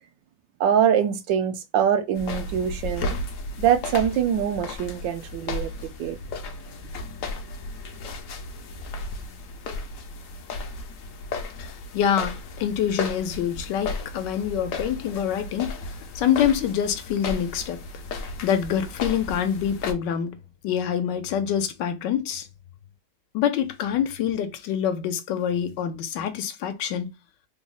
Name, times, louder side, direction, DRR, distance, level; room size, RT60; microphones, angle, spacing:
voice 1, 0.6-3.1 3.6-6.2, right 9 dB, 90° right, 1.3 m, -23 dB
sound 1, 2.1-19.9, left 3 dB, 65° left, 0.8 m, -34 dB
voice 2, 11.6-17.8 18.4-20.4 20.6-22.5 23.3-27.1, left 9 dB, 80° left, 1.2 m, -26 dB
3.7 x 2.1 x 3.7 m
omnidirectional pair, 1.9 m